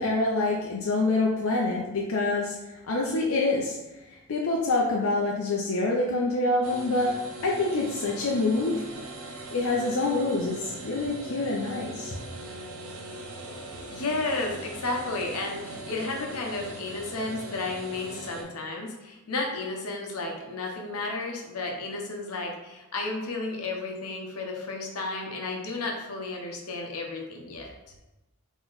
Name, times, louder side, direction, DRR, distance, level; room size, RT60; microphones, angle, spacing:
voice 1, 0.0-2.5 2.9-3.8 4.3-7.2 7.4-8.8 9.5-12.1, left 2 dB, 70° left, -2 dB, 0.5 m, -26 dB
sound 1, 6.6-18.4, right 1 dB, 80° right, 0.8 m, -40 dB
voice 2, 13.9-27.7, left 3 dB, 90° left, 1 dB, 0.9 m, -33 dB
3.9 x 3.0 x 3.9 m, 1.0 s
head